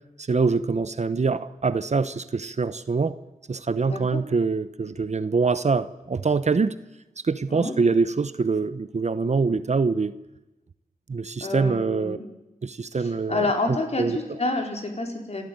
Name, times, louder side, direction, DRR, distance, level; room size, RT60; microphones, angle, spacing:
voice 1, 0.2-3.2 3.5-6.8 7.2-10.2 11.1-12.2 12.6-14.2, right 4 dB, 50° right, 14 dB, 0.9 m, -24 dB
voice 2, 3.8-4.2 7.5-7.7 11.4-12.3 12.9-15.4, left 2 dB, 45° left, 3 dB, 4.7 m, -28 dB
28.0 x 13.0 x 9.6 m, 1.0 s
wide cardioid pair, 70°, 15 cm